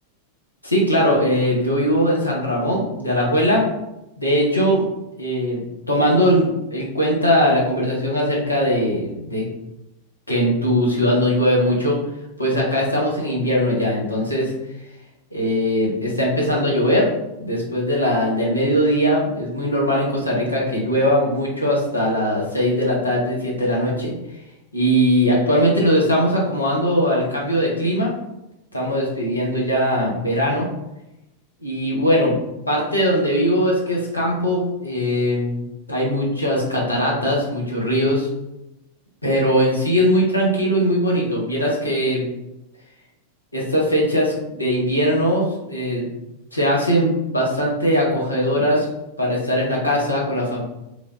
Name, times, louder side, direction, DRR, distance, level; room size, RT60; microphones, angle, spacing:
voice 1, 0.6-3.7 4.2-4.8 5.2-5.6 5.9-9.5 10.3-12.0 12.4-14.5 15.3-17.1 17.3-24.1 24.7-28.1 28.7-30.7 31.6-32.4 32.7-38.3 39.2-42.3 43.5-46.1 46.5-48.9 49.2-50.6, equal, 85° left, -3 dB, 0.9 m, -20 dB
3.4 x 3.3 x 2.4 m, 0.91 s
figure-of-eight pair, 90°, 0 cm